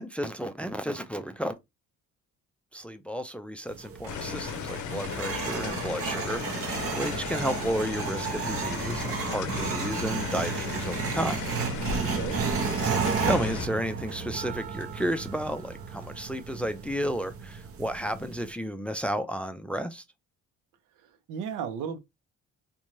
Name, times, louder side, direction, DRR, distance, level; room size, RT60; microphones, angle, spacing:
voice 1, 0.0-1.6 2.7-11.4 12.8-13.0 13.2-20.0, equal, 5° left, 0.3 m, -32 dB
sound 1, 3.7-18.5, right 6 dB, 50° right, 0.6 m, -33 dB
sound 2, 4.1-13.7, left 7 dB, 75° left, 0.6 m, -35 dB
voice 2, 10.3-10.6 12.0-12.4 21.3-22.0, right 7 dB, 90° right, 0.6 m, -35 dB
2.6 x 2.2 x 3.0 m
cardioid pair, 90°, 30 cm